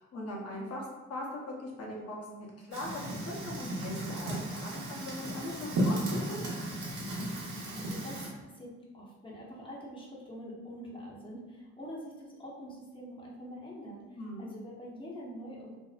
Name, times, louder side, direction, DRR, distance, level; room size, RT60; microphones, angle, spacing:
voice 1, 0.0-6.4 6.6-6.8 14.2-14.5, left 1 dB, 50° left, -4 dB, 0.8 m, -40 dB
Fire, 2.7-8.3, right 1 dB, 75° right, 0.8 m, -35 dB
voice 2, 7.5-15.8, equal, 15° left, -5 dB, 0.7 m, -45 dB
2.6 x 2.1 x 2.4 m, 1.2 s
cardioid pair, 90°, 30 cm